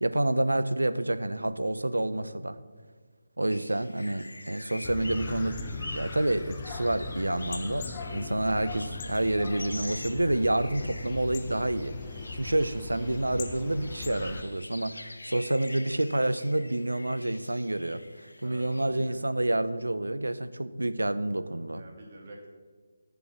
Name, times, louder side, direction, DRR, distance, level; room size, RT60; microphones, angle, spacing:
voice 1, 0.0-2.6 3.4-5.6 5.9-11.9 12.3-21.8, right 1 dB, 85° right, 13 dB, 0.7 m, -28 dB
sound 1, 3.5-18.8, left 2 dB, 80° left, 0.9 m, -46 dB
sound 2, 4.8-14.4, left 3 dB, 20° left, 0.9 m, -39 dB
voice 2, 18.4-19.2 21.7-22.5, right 1 dB, 45° right, 0 dB, 2.8 m, -47 dB
14.0 x 7.2 x 6.0 m, 1.5 s
figure-of-eight pair, 155°, 0 cm